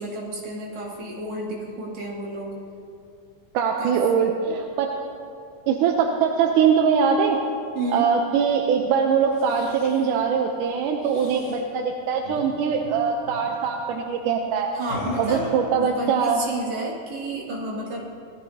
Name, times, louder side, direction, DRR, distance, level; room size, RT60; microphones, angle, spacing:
voice 1, 0.0-2.5 3.8-4.4 7.7-8.1 14.7-15.5 15.8-18.0, right 2 dB, 55° right, -6 dB, 3.7 m, -31 dB
voice 2, 3.5-4.9 5.7-7.4 7.9-14.7 15.2-16.4, right 6 dB, 75° right, 2 dB, 2.0 m, -22 dB
sound 1, 9.2-10.1 11.0-11.6 12.2-12.5 12.7-12.9 13.2-13.5 14.8-15.8, left 1 dB, 90° left, 4.9 m, -37 dB
19.0 x 13.5 x 2.8 m, 2.5 s
omnidirectional pair, 4.1 m